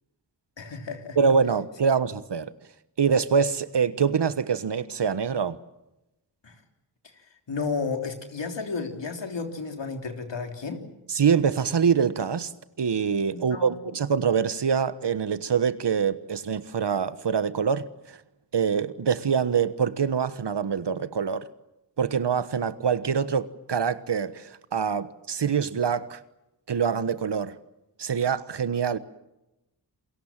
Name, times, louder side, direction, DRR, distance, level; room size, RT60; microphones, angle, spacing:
voice 1, 0.6-1.2 6.4-6.6 7.5-10.8 13.3-13.8, left 4 dB, 65° left, 3.6 m, -32 dB
voice 2, 1.2-2.5 3.0-5.6 11.1-12.5 12.8-18.2 18.5-21.5 22.0-26.2 26.7-27.6 28.0-29.0, right 6 dB, 60° right, 1.3 m, -25 dB
29.0 x 22.0 x 7.5 m
cardioid pair, 50°, 47 cm